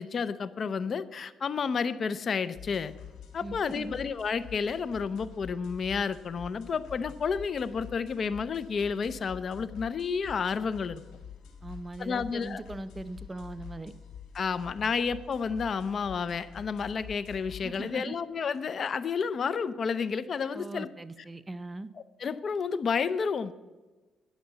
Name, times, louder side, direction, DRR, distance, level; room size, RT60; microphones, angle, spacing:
voice 1, 0.0-2.9 3.3-11.0 12.0-12.6 14.3-20.9 22.2-23.5, left 5 dB, 50° left, 16 dB, 0.6 m, -31 dB
sound 1, 2.5-17.8, left 8 dB, 85° left, 2.8 m, -47 dB
voice 2, 3.4-3.9 11.6-13.9 17.6-18.2 20.5-21.9, right 2 dB, 20° right, 13 dB, 0.6 m, -40 dB
11.5 x 6.7 x 8.0 m, 1.2 s
cardioid pair, 90°, 0 cm